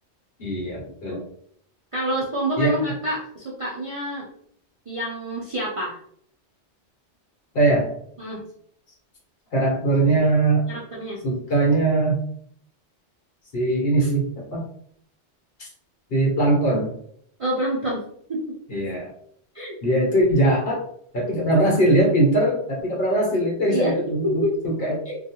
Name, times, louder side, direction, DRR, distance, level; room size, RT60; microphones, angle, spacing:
voice 1, 0.4-1.2 2.6-2.8 7.5-7.9 9.5-10.6 11.2-12.2 13.5-14.6 15.6-15.7 16.1-16.9 18.7-19.1 19.8-20.8 21.1-25.0, right 1 dB, 60° left, -2 dB, 1.1 m, -21 dB
voice 2, 1.9-4.3 4.9-6.0 8.2-8.4 10.7-11.2 17.4-18.0 18.3-18.5 19.5-19.8 23.7-24.0 24.2-24.6 25.0-25.2, equal, 50° right, -4 dB, 0.4 m, -27 dB
2.4 x 2.3 x 2.8 m, 0.65 s
omnidirectional pair, 1.2 m